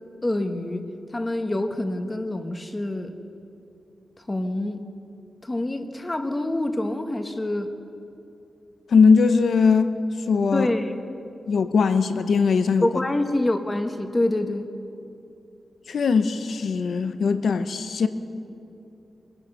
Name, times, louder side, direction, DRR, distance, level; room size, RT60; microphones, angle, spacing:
voice 1, 0.2-0.8 1.1-3.1 4.3-4.8 5.4-7.7 10.5-10.9 12.8-14.7, left 1 dB, 20° left, 1.4 m, -26 dB
voice 2, 8.9-10.0 10.3-10.7 11.5-12.9 15.9-18.1, left 5 dB, 75° left, 0.9 m, -20 dB
25.0 x 20.0 x 5.6 m
wide cardioid pair, 140°, 0 cm